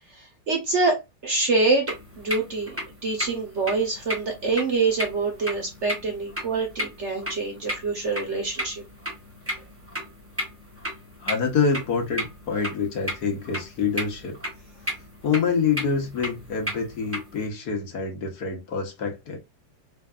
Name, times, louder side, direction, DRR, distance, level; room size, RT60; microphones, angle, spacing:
voice 1, 0.1-2.8 3.0-8.8, right 3 dB, 50° right, 0.9 m, -26 dB
sound 1, 1.9-17.4, equal, 10° right, 0.9 m, -35 dB
voice 2, 11.2-14.4 15.2-19.4, left 5 dB, 65° left, 1.6 m, -26 dB
3.9 x 3.5 x 2.4 m
omnidirectional pair, 1.9 m